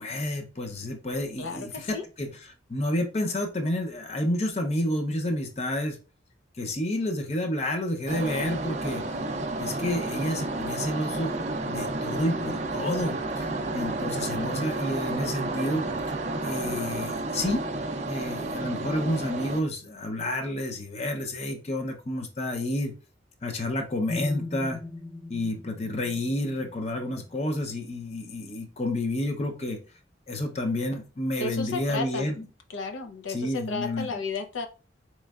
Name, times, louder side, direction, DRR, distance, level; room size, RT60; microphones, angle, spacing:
voice 1, 0.0-2.3 2.7-6.0 6.6-9.0 9.6-11.4 11.7-15.9 16.4-17.6 18.1-22.9 23.4-24.8 25.3-29.8 30.3-32.5 33.3-34.2, left 1 dB, 35° left, 4 dB, 0.6 m, -30 dB
voice 2, 1.4-2.0 31.4-32.3 32.7-34.7, left 3 dB, 90° left, 6 dB, 0.6 m, -33 dB
sound 1, 8.1-19.6, right 2 dB, 35° right, 0.4 m, -31 dB
sound 2, 24.1-28.0, left 2 dB, 50° left, 1.4 m, -40 dB
4.3 x 3.1 x 2.3 m, 0.33 s
head